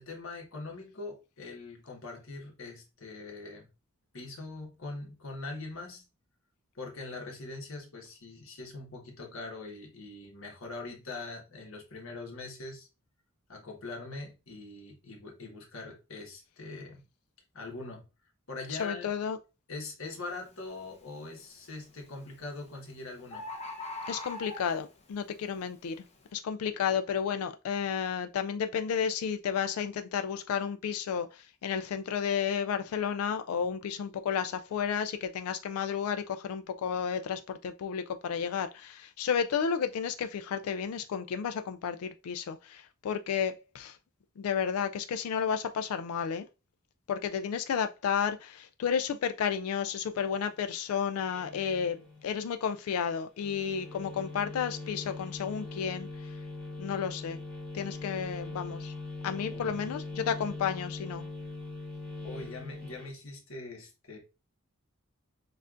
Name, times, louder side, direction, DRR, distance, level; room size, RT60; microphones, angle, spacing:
voice 1, 0.0-3.7 4.1-6.0 6.7-12.9 13.5-17.0 17.5-18.0 18.5-19.1 19.7-23.5 59.5-59.9 62.2-64.2, left 3 dB, 65° left, 1.4 m, -42 dB
voice 2, 18.7-19.4 24.1-26.0 26.3-44.0 44.4-46.5 47.1-56.3 56.8-57.4 57.7-58.9 59.2-61.2, left 7 dB, 85° left, 0.3 m, -32 dB
Bird, 20.0-20.3 20.8-21.3 22.3-22.4 22.7-22.8 23.0-23.1 23.3-25.0 25.6-25.7, left 2 dB, 30° left, 0.8 m, -40 dB
sound 1, 51.2-52.4 53.4-63.1, left 3 dB, 5° left, 1.3 m, -41 dB
6.5 x 2.5 x 2.5 m
head